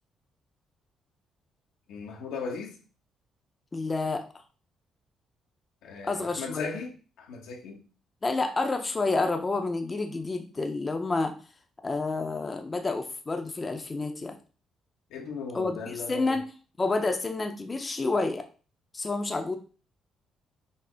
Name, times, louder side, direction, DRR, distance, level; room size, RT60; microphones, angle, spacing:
voice 1, 1.9-2.7 5.8-7.8 15.1-16.4, left 5 dB, 90° left, 0.9 m, -37 dB
voice 2, 3.7-4.2 6.0-6.7 8.2-11.3 11.8-14.3 15.5-16.4 16.8-18.5 18.9-19.6, left 3 dB, 25° left, 0.5 m, -29 dB
5.5 x 2.1 x 3.8 m
cardioid pair, 90°, 0 cm